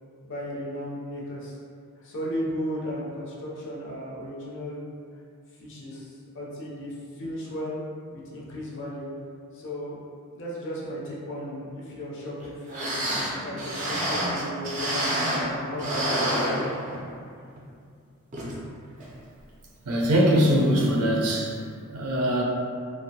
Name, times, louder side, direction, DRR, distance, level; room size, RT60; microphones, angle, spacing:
voice 1, 0.2-1.6 2.0-4.8 5.6-7.8 8.1-9.1 9.5-10.0 10.3-15.1 15.5-16.7 17.3-17.5, equal, 55° left, -5 dB, 0.6 m, -35 dB
sound 1, 12.4-12.5 12.7-15.5 15.8-17.2 17.6-17.7 18.3-18.6 19.0-19.1, right 1 dB, 35° right, 0.4 m, -28 dB
voice 2, 19.9-21.5 21.9-22.4, equal, 90° right, -2 dB, 0.5 m, -22 dB
2.5 x 2.0 x 2.7 m, 2.3 s
head